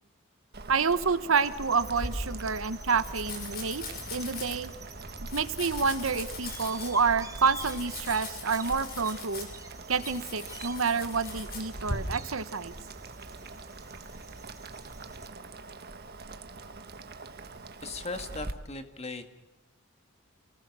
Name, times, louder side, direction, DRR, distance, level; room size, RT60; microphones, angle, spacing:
Boiling, 0.5-18.5, right 3 dB, 50° right, 1.6 m, -44 dB
voice 1, 0.7-3.8 4.1-4.7 5.3-9.5 9.9-12.7, right 5 dB, 70° right, 12 dB, 1.1 m, -28 dB
sound 1, 1.4-15.3, right 3 dB, 15° right, 2.5 m, -48 dB
Domestic sounds home sounds, 1.8-12.0, left 2 dB, 45° left, 6.4 m, -40 dB
voice 2, 17.8-19.2, left 3 dB, 30° left, 7 dB, 2.1 m, -38 dB
28.5 x 19.0 x 6.2 m, 1.1 s
head